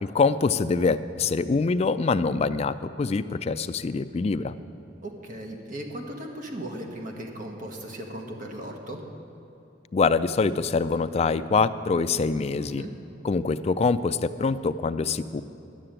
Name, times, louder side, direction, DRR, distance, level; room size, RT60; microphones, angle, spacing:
voice 1, 0.0-4.5 9.9-12.8 13.2-15.4, left 4 dB, 35° left, 12 dB, 0.3 m, -24 dB
voice 2, 5.0-9.0 12.6-12.9, right 1 dB, 45° right, 2 dB, 1.3 m, -37 dB
11.5 x 6.8 x 8.9 m, 2.9 s
head